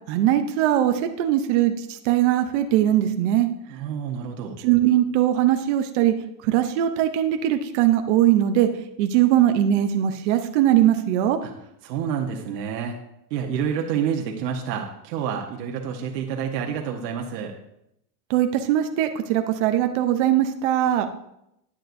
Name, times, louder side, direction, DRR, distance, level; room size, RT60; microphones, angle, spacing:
voice 1, 0.1-3.5 4.6-6.1 6.4-8.7 9.0-11.4 18.3-21.1, right 12 dB, 45° right, 6 dB, 0.7 m, -20 dB
voice 2, 3.7-4.6 11.4-11.5 11.8-13.0 13.3-17.5, right 7 dB, 80° right, 1 dB, 1.2 m, -28 dB
9.8 x 9.3 x 2.6 m, 0.80 s
supercardioid pair, 165°, 48 cm